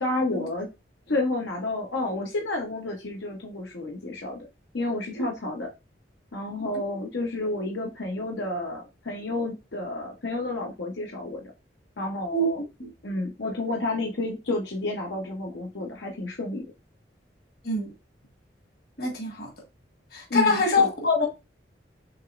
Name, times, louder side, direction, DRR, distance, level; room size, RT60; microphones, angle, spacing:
voice 1, 0.0-0.7 1.1-4.5 4.7-5.7 6.3-11.5 12.0-12.6 13.0-16.6 20.3-20.9, left 2 dB, 80° left, 0.9 m, -30 dB
voice 2, 19.0-19.5 20.1-21.3, left 2 dB, 55° left, 1.5 m, -24 dB
6.2 x 3.0 x 2.5 m
head